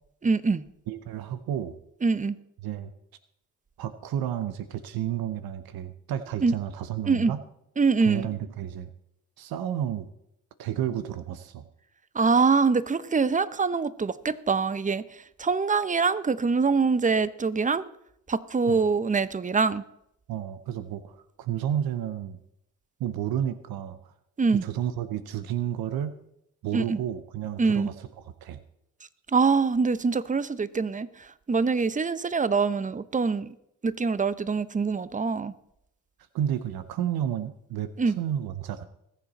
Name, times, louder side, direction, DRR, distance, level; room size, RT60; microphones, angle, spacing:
voice 1, 0.2-0.7 2.0-2.3 6.4-6.5 7.1-7.3 7.8-8.3 12.1-15.0 15.4-17.8 18.3-19.8 24.4-24.6 26.7-27.0 27.6-27.9 29.3-33.5 33.8-35.5 38.0-38.2, right 4 dB, 20° right, 0.8 m, -24 dB
voice 2, 0.9-1.8 2.6-2.9 3.8-7.4 8.0-8.9 9.4-10.1 10.6-11.7 18.7-18.8 20.3-22.4 23.0-24.1 24.5-26.2 26.6-27.9 28.4-28.6 36.3-38.8, right 10 dB, 80° right, 0.9 m, -31 dB
20.5 x 7.3 x 4.1 m
supercardioid pair, 60°, 36 cm